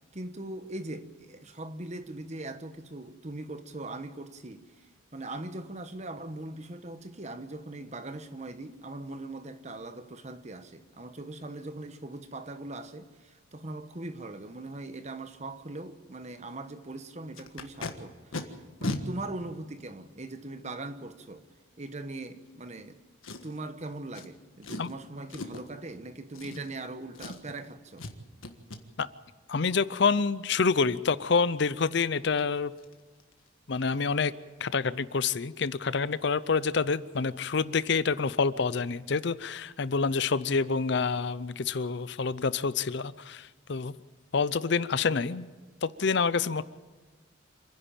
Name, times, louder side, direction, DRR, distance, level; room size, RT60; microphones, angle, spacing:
voice 1, 0.0-21.5 21.8-23.0 23.4-28.1, right 2 dB, 35° right, 1.1 m, -40 dB
Packing tape duct tape, 17.3-17.9 18.3-18.4 18.8-19.0 19.8-19.9 23.2-23.7 24.1-24.3 24.6-24.9 25.3-25.7 26.3-26.9 27.1-27.6 28.0-28.1 28.4-28.8 31.8-31.9 32.3-32.4 32.8-32.9 33.2-33.5 33.7-33.8, left 2 dB, 85° left, 1.6 m, -37 dB
voice 2, 29.5-32.7 33.7-34.3 34.6-43.9 44.3-45.5 45.8-46.6, left 5 dB, 60° left, 0.6 m, -27 dB
27.5 x 10.5 x 8.9 m
head